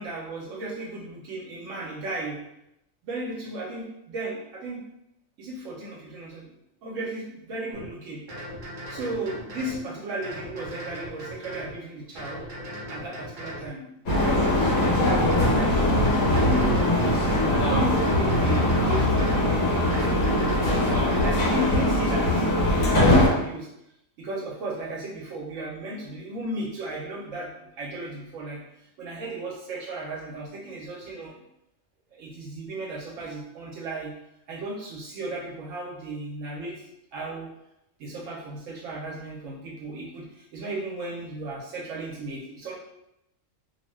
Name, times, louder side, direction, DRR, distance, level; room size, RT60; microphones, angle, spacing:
voice 1, 0.0-2.4 3.0-4.9 5.4-6.5 6.8-8.2 8.9-12.5 12.9-15.8 16.3-20.1 20.6-22.4 22.7-23.7 24.2-31.4 32.1-34.1 34.5-36.8 37.1-37.5 38.0-42.8, right 2 dB, 75° right, -3 dB, 0.9 m, -35 dB
sound 1, 7.7-7.9 8.3-9.8 10.2-11.7 12.2-13.7 14.1-15.6 16.0-17.5 18.0-19.5 19.9-21.4, equal, 45° right, 0.7 m, -38 dB
sound 2, 14.1-23.3, left 1 dB, 75° left, 1.2 m, -21 dB
2.7 x 2.1 x 3.0 m, 0.82 s
omnidirectional pair, 1.4 m